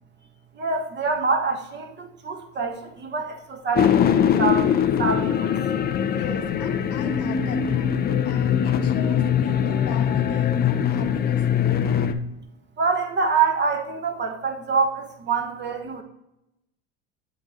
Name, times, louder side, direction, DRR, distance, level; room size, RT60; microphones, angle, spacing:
voice 1, 0.5-5.5 12.8-16.0, right 4 dB, 35° right, 4 dB, 1.3 m, -26 dB
sound 1, 3.8-12.1, left 8 dB, 30° left, 0.5 m, -22 dB
voice 2, 6.1-8.0 8.2-12.2, left 6 dB, 45° left, 3 dB, 1.1 m, -37 dB
7.9 x 3.8 x 3.9 m, 0.85 s
supercardioid pair, 95°, 33 cm